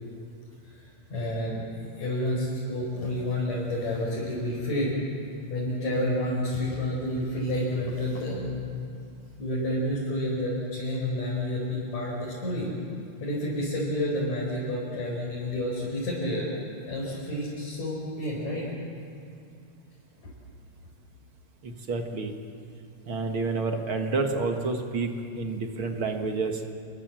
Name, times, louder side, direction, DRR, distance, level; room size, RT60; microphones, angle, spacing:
voice 1, 1.1-1.7 2.0-5.0 5.5-8.7 9.4-12.7 13.2-16.5 16.9-18.7, left 1 dB, 65° left, -6 dB, 6.2 m, -29 dB
voice 2, 21.6-22.3 23.1-25.1 25.4-26.6, right 3 dB, 45° right, 4 dB, 2.2 m, -29 dB
29.5 x 22.0 x 7.7 m, 2.5 s
omnidirectional pair, 3.5 m